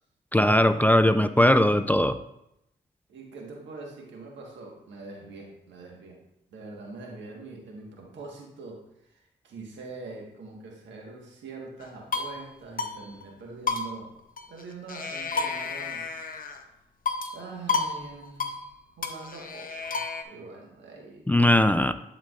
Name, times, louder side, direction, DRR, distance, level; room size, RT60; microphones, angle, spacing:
voice 1, 0.3-2.2 21.3-21.9, left 1 dB, 10° left, 11 dB, 0.4 m, -20 dB
voice 2, 3.1-6.2 6.5-8.8 9.1-14.1 14.5-16.1 17.3-18.5 19.0-21.7, right 3 dB, 90° right, -1 dB, 1.5 m, -43 dB
sound 1, 11.8-12.4 12.8-12.9 13.2-13.3 13.7-14.6 14.9-16.6 17.1-17.4 17.7-18.0 18.2-18.6 19.0-20.2, left 4 dB, 50° left, 0.8 m, -31 dB
11.5 x 4.7 x 2.5 m, 0.82 s
cardioid pair, 55°, 19 cm